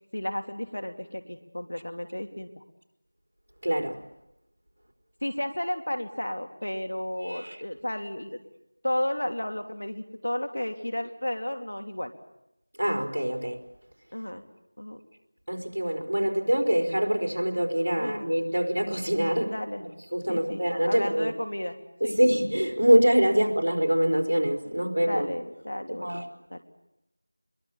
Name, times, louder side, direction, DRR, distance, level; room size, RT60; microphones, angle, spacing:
voice 1, 0.1-2.6 5.2-8.4 8.8-12.1 14.1-14.4 14.8-15.0 18.0-18.2 19.4-19.8 20.3-21.7 22.0-22.2 24.7-26.2 26.5-26.6, left 1 dB, 70° left, 5 dB, 3.1 m, -33 dB
voice 2, 3.6-4.0 7.2-7.6 12.8-13.6 15.5-19.5 20.1-21.3 22.0-25.3 26.0-26.2, equal, 75° right, 2 dB, 4.6 m, -24 dB
28.0 x 22.5 x 7.3 m, 0.88 s
figure-of-eight pair, 175°, 0 cm